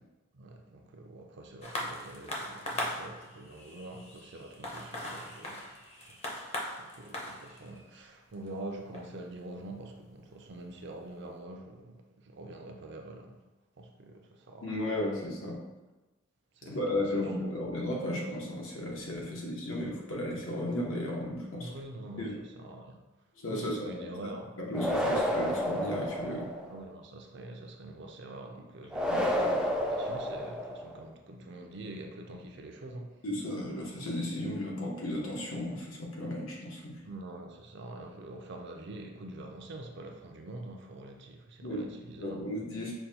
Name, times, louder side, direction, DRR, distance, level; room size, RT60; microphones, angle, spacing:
voice 1, 0.3-5.7 6.0-6.2 6.8-13.4 13.8-14.8 16.5-17.2 21.6-22.3 22.6-23.0 23.5-24.5 26.7-33.2 37.0-42.4, right 2 dB, 60° right, 3 dB, 0.5 m, -45 dB
sound 1, 1.6-10.5 11.2-11.3, left 1 dB, 30° left, 0.6 m, -40 dB
voice 2, 14.6-15.6 16.7-21.7 22.2-22.4 23.4-24.1 24.6-26.5 29.0-29.6 33.2-37.0 41.6-41.9 42.2-42.9, left 1 dB, 85° left, -3 dB, 1.0 m, -34 dB
sound 2, 24.7-26.8 28.9-31.0, equal, 5° right, 0.3 m, -30 dB
5.4 x 2.3 x 2.8 m, 1.1 s
head